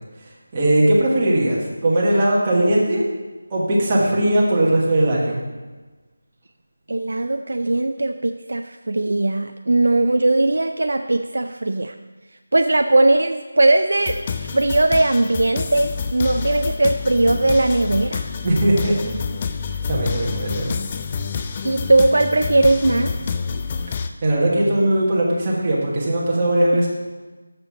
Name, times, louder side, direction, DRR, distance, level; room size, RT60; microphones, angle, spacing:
voice 1, 0.5-3.0 3.5-5.4 18.4-19.1 19.9-20.7 24.2-26.9, right 1 dB, 20° right, -5 dB, 1.4 m, -19 dB
voice 2, 6.9-11.9 12.5-18.3 21.6-23.2, right 2 dB, 70° right, 6 dB, 0.4 m, -19 dB
sound 1, 14.0-24.1, left 5 dB, 20° left, 0.3 m, -28 dB
6.9 x 5.5 x 7.0 m, 1.3 s
figure-of-eight pair, 175°, 0 cm